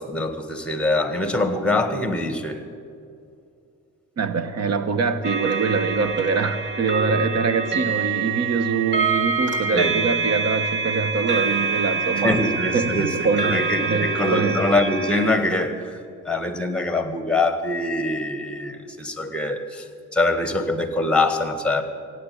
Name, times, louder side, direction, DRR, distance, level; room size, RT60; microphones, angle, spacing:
voice 1, 0.0-2.6 9.7-10.0 12.2-15.9 16.2-19.9 20.1-21.8, left 2 dB, 5° left, 8 dB, 1.7 m, -23 dB
voice 2, 4.2-14.6, right 4 dB, 60° right, 11 dB, 1.2 m, -24 dB
sound 1, 5.2-15.3, right 5 dB, 40° right, 1.8 m, -26 dB
16.5 x 8.6 x 8.5 m, 2.4 s
cardioid pair, 90°, 30 cm